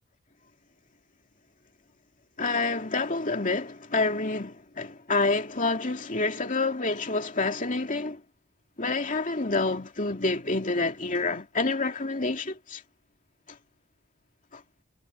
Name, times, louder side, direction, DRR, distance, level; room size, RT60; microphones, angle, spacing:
voice 1, 2.4-8.2 8.8-12.8 14.5-14.6, left 3 dB, 35° left, 2.6 m, -28 dB
head